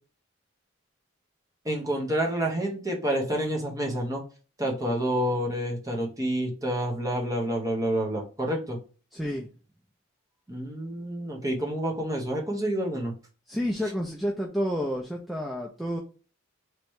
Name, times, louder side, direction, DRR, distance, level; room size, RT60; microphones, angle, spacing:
voice 1, 1.6-4.2 4.6-8.8 10.5-13.1, right 1 dB, 15° right, 0 dB, 1.0 m, -28 dB
voice 2, 9.1-9.5 13.5-16.0, equal, ahead, 0 dB, 0.4 m, -30 dB
3.2 x 3.0 x 4.6 m, 0.37 s
head